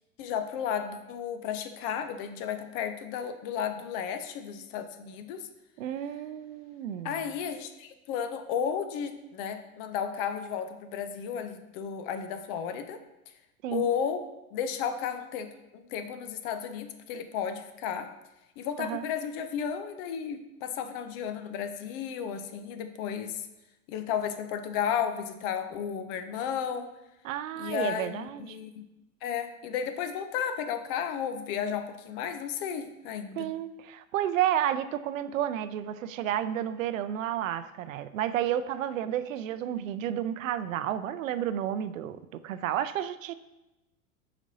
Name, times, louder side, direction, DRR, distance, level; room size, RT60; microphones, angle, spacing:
voice 1, 0.2-5.5 7.0-13.0 13.7-18.1 18.6-23.4 23.9-26.9 27.6-28.8 29.2-33.5, left 8 dB, 40° left, 9 dB, 0.6 m, -33 dB
voice 2, 5.8-7.2 13.6-13.9 18.8-19.0 27.2-28.6 33.4-43.3, right 11 dB, 65° right, 13 dB, 0.5 m, -31 dB
7.2 x 5.1 x 2.7 m, 0.97 s
figure-of-eight pair, 90°, 42 cm